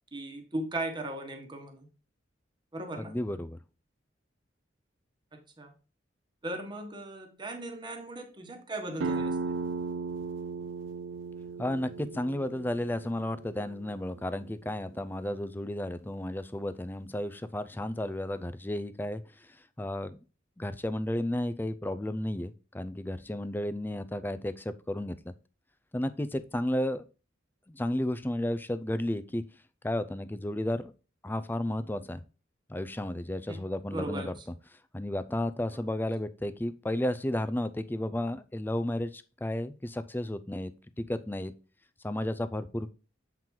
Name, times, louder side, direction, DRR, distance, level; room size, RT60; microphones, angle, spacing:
voice 1, 0.1-1.9 2.7-3.1 5.6-5.7 6.4-9.6 33.5-33.6 33.9-34.3, right 1 dB, 25° right, 4 dB, 1.2 m, -37 dB
voice 2, 3.0-3.6 11.6-19.2 19.8-20.2 20.6-25.3 25.9-27.0 27.7-29.4 29.8-30.9 31.2-32.2 32.7-34.3 34.9-40.7 41.0-41.5 42.0-42.9, left 1 dB, 10° left, 12 dB, 0.4 m, -33 dB
sound 1, 9.0-14.4, right 4 dB, 85° right, 0.5 m, -36 dB
7.7 x 4.5 x 3.7 m, 0.34 s
head